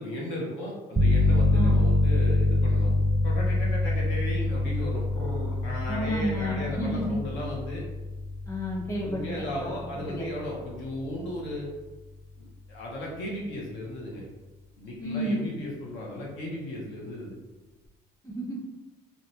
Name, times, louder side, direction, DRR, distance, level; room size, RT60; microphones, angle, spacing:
voice 1, 0.0-2.9 3.2-7.8 9.0-11.7 12.4-14.3 14.8-17.4, left 1 dB, 70° left, -3 dB, 0.7 m, -35 dB
sound 1, 1.0-11.5, left 2 dB, 10° right, 0.5 m, -26 dB
voice 2, 5.8-7.2 8.5-9.3 9.6-10.2 15.0-15.5 18.2-18.7, equal, 15° left, -4 dB, 1.0 m, -31 dB
2.5 x 2.2 x 2.9 m, 1.1 s
supercardioid pair, 70°, 20 cm